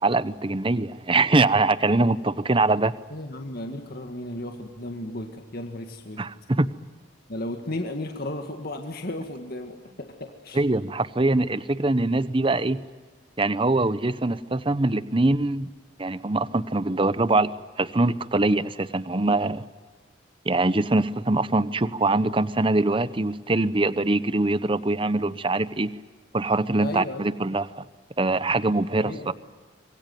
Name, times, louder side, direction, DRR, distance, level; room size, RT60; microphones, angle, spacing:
voice 1, 0.0-2.9 6.2-6.7 10.5-12.8 13.4-15.7 16.0-17.5 17.8-19.7 20.4-25.9 26.3-27.9 28.2-29.3, right 2 dB, 25° right, 15 dB, 0.8 m, -23 dB
voice 2, 3.1-6.3 7.3-10.6 26.8-27.3 28.9-29.3, left 1 dB, 50° left, 4 dB, 1.9 m, -34 dB
26.0 x 22.0 x 9.3 m, 1.4 s
head